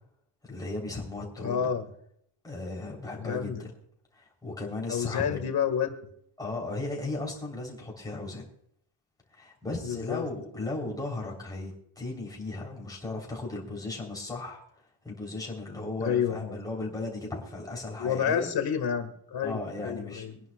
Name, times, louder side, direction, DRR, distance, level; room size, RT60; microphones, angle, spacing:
voice 1, 0.4-1.7 2.4-3.7 4.1-5.4 6.4-8.5 9.3-14.6 15.0-18.5 19.4-20.3, left 2 dB, 10° left, -2 dB, 3.6 m, -36 dB
voice 2, 1.4-1.9 3.2-3.6 4.9-5.9 9.8-10.2 16.0-16.6 18.0-20.3, left 8 dB, 50° left, 7 dB, 1.8 m, -29 dB
23.5 x 10.5 x 2.4 m, 0.68 s
cardioid pair, 160°, 47 cm